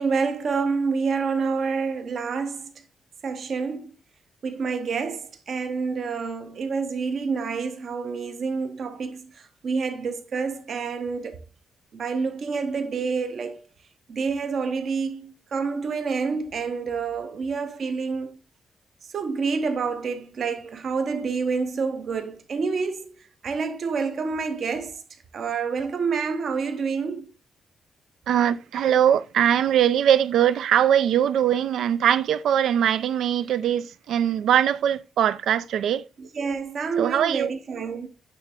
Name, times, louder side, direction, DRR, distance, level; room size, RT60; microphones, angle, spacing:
voice 1, 0.0-2.7 3.2-3.9 4.4-11.4 11.9-13.6 14.1-18.4 19.1-25.0 25.3-27.3 36.2-38.1, right 5 dB, 50° right, 0.9 m, -28 dB
voice 2, 28.3-36.1 37.0-37.5, right 9 dB, 80° right, 0.4 m, -21 dB
9.0 x 3.3 x 3.5 m
wide cardioid pair, 160°, 0 cm